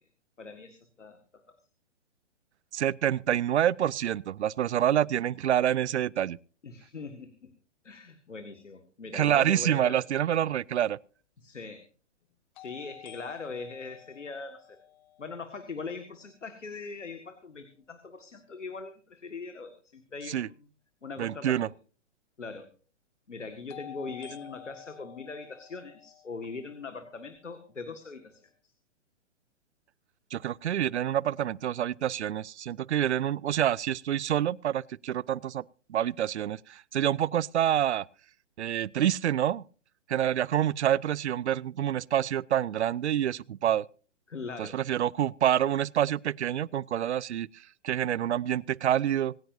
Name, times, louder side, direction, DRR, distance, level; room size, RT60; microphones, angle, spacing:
voice 1, 0.4-1.2 1.5-1.6 6.6-7.5 7.8-10.0 11.4-11.8 12.6-14.8 15.2-20.6 21.0-21.6 22.4-22.7 23.3-28.5 44.3-44.8, left 4 dB, 85° left, 1.9 m, -41 dB
voice 2, 2.7-6.4 9.1-11.0 20.3-20.5 21.2-21.7 30.3-35.6 35.9-38.1 38.6-39.6 40.1-43.8 44.6-47.5 47.8-49.3, right 10 dB, 70° right, 0.6 m, -27 dB
sound 1, 10.6-10.7 12.5-16.5 23.7-27.7, left 12 dB, 40° left, 1.4 m, -51 dB
25.5 x 10.5 x 2.7 m
figure-of-eight pair, 125°, 36 cm